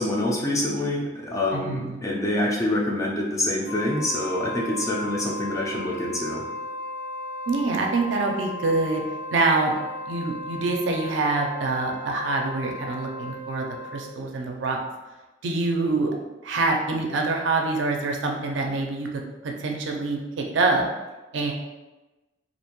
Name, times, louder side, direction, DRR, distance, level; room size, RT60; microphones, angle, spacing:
voice 1, 0.0-6.5, left 1 dB, 15° left, -3 dB, 0.4 m, -26 dB
voice 2, 1.5-2.0 7.5-9.0 9.3-9.8 10.0-13.7 13.9-14.8 15.4-16.2 16.4-20.8 21.3-21.5, right 3 dB, 65° right, 1 dB, 0.4 m, -25 dB
Wind instrument woodwind instrument, 3.6-14.2, left 1 dB, 75° left, 0.8 m, -36 dB
2.5 x 2.1 x 2.9 m, 1.1 s
head